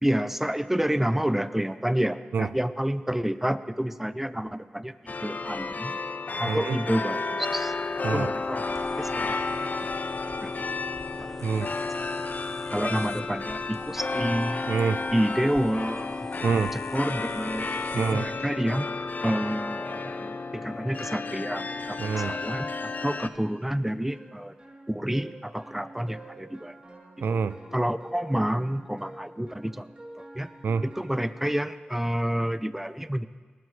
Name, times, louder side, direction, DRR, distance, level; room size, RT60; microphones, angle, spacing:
voice 1, 0.0-6.0 6.4-7.7 8.1-9.7 10.4-10.7 12.7-14.6 15.1-16.3 16.7-18.9 19.2-24.5 24.9-26.8 27.2-27.3 27.7-29.9 30.3-30.5 30.8-33.3, equal, 10° right, 14 dB, 0.6 m, -29 dB
sound 1, 5.1-23.3, left 3 dB, 55° left, 0.6 m, -32 dB
voice 2, 6.4-6.8 8.0-8.3 11.4-11.7 14.7-15.0 16.4-16.7 17.9-18.3 22.0-22.4 27.2-27.6 30.6-30.9, right 5 dB, 75° right, 16 dB, 0.4 m, -26 dB
sound 2, 8.7-18.3, left 1 dB, 10° left, 0.9 m, -46 dB
sound 3, 24.1-31.8, right 1 dB, 30° right, 2.9 m, -47 dB
18.5 x 12.5 x 3.3 m, 1.5 s
cardioid pair, 40°, 3 cm